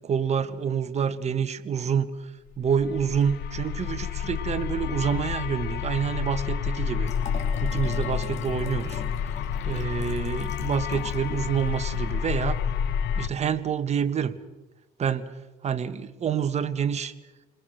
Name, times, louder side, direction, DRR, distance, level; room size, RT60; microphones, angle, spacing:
voice 1, 0.0-7.1 7.6-9.0 9.6-12.6 13.1-14.4 15.0-17.1, right 7 dB, 40° right, 10 dB, 1.4 m, -27 dB
sound 1, 2.6-13.3, left 8 dB, 80° left, 1.1 m, -29 dB
Liquid, 7.0-11.3 11.6-11.7, left 5 dB, 45° left, 3.9 m, -42 dB
29.0 x 21.0 x 6.5 m, 1.2 s
cardioid pair, 110°, 17 cm